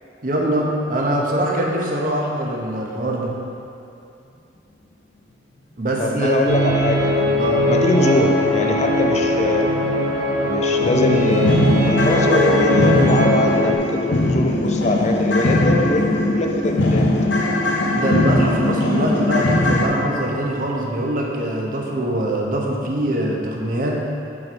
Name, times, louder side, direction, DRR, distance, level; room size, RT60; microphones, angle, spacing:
voice 1, 0.2-3.4 5.8-6.4 7.4-7.6 17.9-24.0, right 1 dB, 50° right, -1 dB, 0.9 m, -23 dB
voice 2, 6.0-9.7 10.4-16.0 16.4-17.1, left 2 dB, 40° left, 2 dB, 0.5 m, -22 dB
sound 1, 6.5-13.8, equal, 90° right, 0.8 m, -20 dB
sound 2, 10.0-10.1 10.4-10.5 10.8-19.9, left 1 dB, 80° left, 0.7 m, -20 dB
7.5 x 4.2 x 4.5 m, 2.7 s
head